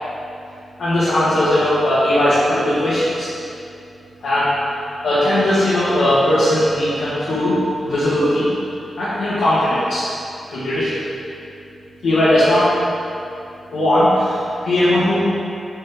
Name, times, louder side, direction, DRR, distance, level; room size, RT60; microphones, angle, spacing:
voice 1, 0.8-3.3 4.2-4.5 5.0-7.6 7.8-8.5 9.0-10.1 10.5-11.0 12.0-12.7 13.7-15.2, left 1 dB, 90° left, -12 dB, 1.3 m, -18 dB
7.4 x 4.4 x 3.5 m, 2.6 s
wide cardioid pair, 140°, 0 cm